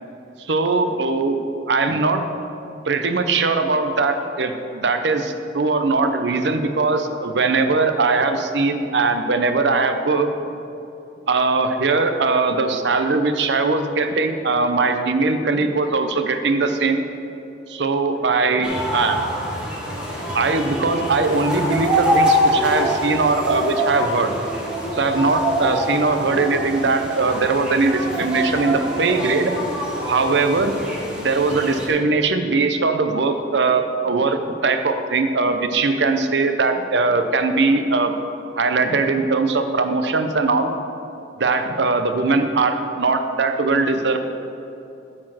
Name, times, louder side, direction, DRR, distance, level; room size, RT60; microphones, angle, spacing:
voice 1, 0.4-1.4 1.7-2.2 2.8-10.3 11.3-17.0 17.7-19.3 20.3-24.3 24.9-29.5 30.1-30.8 31.2-38.1 38.5-40.7 41.4-44.2, right 3 dB, 65° right, 7 dB, 0.6 m, -20 dB
sound 1, 18.6-31.9, equal, 5° right, 1.2 m, -25 dB
12.5 x 4.3 x 6.1 m, 2.8 s
head